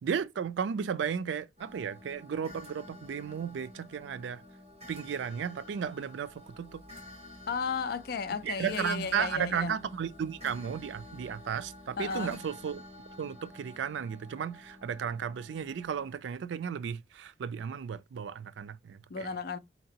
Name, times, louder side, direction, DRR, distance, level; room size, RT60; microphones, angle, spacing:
voice 1, 0.0-4.4 4.9-6.3 6.6-6.8 8.4-12.8 13.2-19.4, right 7 dB, 80° right, 0.3 m, -34 dB
sound 1, 1.6-16.1, left 1 dB, 35° right, 1.2 m, -50 dB
voice 2, 7.5-9.7 12.0-12.4 19.1-19.6, left 5 dB, 55° left, 0.4 m, -34 dB
4.2 x 2.9 x 2.8 m
head